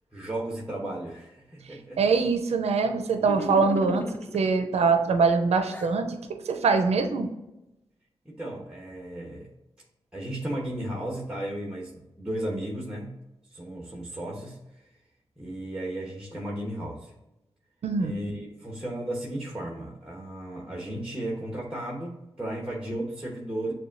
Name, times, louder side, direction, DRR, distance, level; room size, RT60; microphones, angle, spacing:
voice 1, 0.1-2.0 8.2-9.5 10.1-13.2 13.5-14.6 15.4-17.1 18.0-23.7, right 1 dB, 10° right, -3 dB, 1.1 m, -34 dB
voice 2, 2.0-4.0 4.3-6.2 6.5-7.3 17.8-18.1, right 4 dB, 75° right, 7 dB, 0.5 m, -23 dB
sound 1, 3.2-4.5 5.1-6.0, left 1 dB, 15° left, 0.4 m, -36 dB
6.6 x 2.3 x 2.5 m, 0.94 s
cardioid pair, 50°, 11 cm